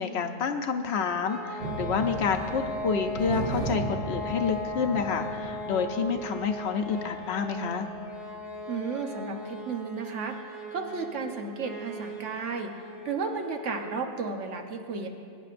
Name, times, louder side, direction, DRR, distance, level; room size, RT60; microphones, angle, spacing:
voice 1, 0.0-7.9, left 5 dB, 70° left, 7 dB, 0.9 m, -28 dB
sound 1, 1.2-14.0, left 1 dB, ahead, 1.1 m, -38 dB
sound 2, 1.6-7.0 8.0-8.1 8.4-8.5, right 3 dB, 50° right, 1.0 m, -36 dB
voice 2, 8.7-10.4 10.7-12.7 13.0-15.1, right 4 dB, 85° right, 4 dB, 1.3 m, -33 dB
22.5 x 9.6 x 2.5 m, 2.3 s
omnidirectional pair, 1.2 m